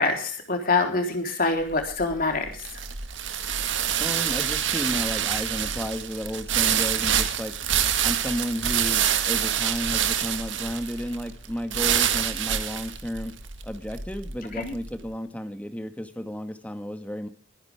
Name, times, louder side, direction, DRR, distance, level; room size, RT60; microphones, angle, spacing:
voice 1, 0.0-2.7 14.5-14.7, left 3 dB, 50° left, 4 dB, 3.9 m, -25 dB
sound 1, 1.6-14.9, right 9 dB, 75° right, 1.8 m, -26 dB
voice 2, 4.0-7.5 8.0-13.3 13.6-17.3, equal, 10° left, 8 dB, 1.9 m, -33 dB
23.5 x 10.5 x 3.6 m, 0.39 s
head